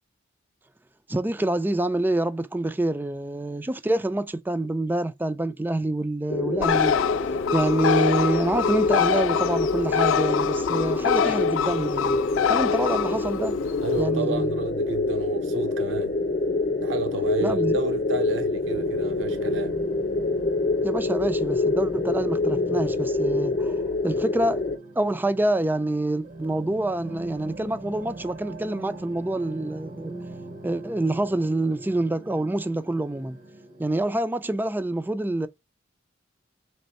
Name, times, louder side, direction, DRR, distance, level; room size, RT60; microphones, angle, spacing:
voice 1, 1.1-6.9 7.5-12.2 12.5-13.6 14.0-14.6 17.4-17.8 20.8-23.7 24.0-24.6 25.0-30.1 30.6-33.4 33.8-35.5, right 1 dB, 10° right, 0.3 m, -26 dB
sound 1, 6.3-24.8, left 3 dB, 45° left, 0.6 m, -26 dB
Bird, 6.6-14.0, left 8 dB, 85° left, 0.3 m, -26 dB
voice 2, 13.8-16.2 16.8-19.8, right 3 dB, 75° right, 0.8 m, -31 dB
sound 2, 18.6-33.9, right 2 dB, 45° right, 0.7 m, -42 dB
3.4 x 3.2 x 4.1 m
head